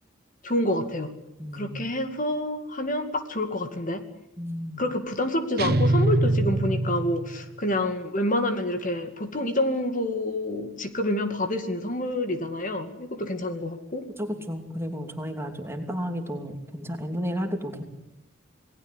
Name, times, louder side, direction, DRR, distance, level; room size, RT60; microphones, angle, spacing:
voice 1, 0.4-1.1 1.5-4.0 4.8-14.1, left 1 dB, 40° left, 7 dB, 2.3 m, -28 dB
voice 2, 1.4-1.8 4.4-4.8 14.2-17.8, equal, 10° right, 5 dB, 2.8 m, -32 dB
sound 1, 5.6-7.6, right 2 dB, 50° right, 0.9 m, -24 dB
28.5 x 19.5 x 8.3 m, 0.86 s
head